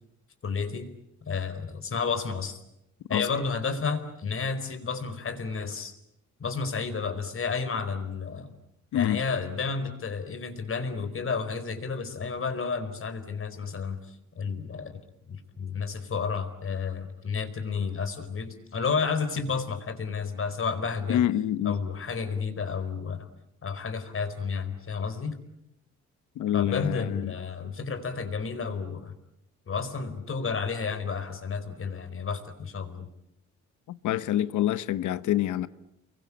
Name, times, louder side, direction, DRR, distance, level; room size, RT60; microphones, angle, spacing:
voice 1, 0.4-0.9 1.3-2.6 3.1-6.0 6.4-8.5 8.9-15.0 15.3-21.2 21.6-23.3 23.6-25.4 26.5-29.1 29.7-33.1, left 5 dB, 45° left, 4.5 m, -31 dB
voice 2, 21.1-21.8 26.4-27.3 33.9-35.7, left 12 dB, 75° left, 1.2 m, -26 dB
30.0 x 23.0 x 8.7 m
cardioid pair, 90°, 30 cm